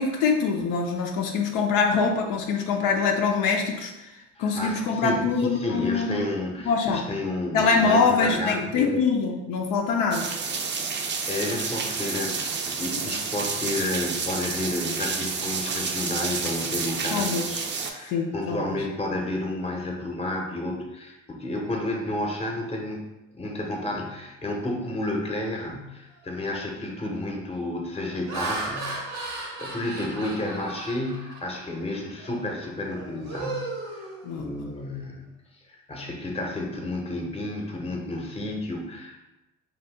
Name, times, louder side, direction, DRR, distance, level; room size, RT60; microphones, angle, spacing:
voice 1, 0.0-3.9 4.4-6.2 6.6-7.0 7.5-10.3 17.1-17.5 18.1-18.7 34.2-34.7, left 5 dB, 70° left, 2 dB, 0.5 m, -24 dB
voice 2, 4.4-9.0 11.3-23.1 23.3-29.1 29.6-34.1 34.4-35.3 35.6-39.2, left 1 dB, 15° left, 1 dB, 0.7 m, -31 dB
sound 1, 10.1-17.9, right 5 dB, 35° right, 0.4 m, -30 dB
Laughter, 26.2-26.4 27.0-27.3 27.9-31.7 32.2-32.4 32.8-34.7, right 3 dB, 85° right, 0.8 m, -36 dB
2.7 x 2.3 x 3.4 m, 0.99 s
supercardioid pair, 65°, 35 cm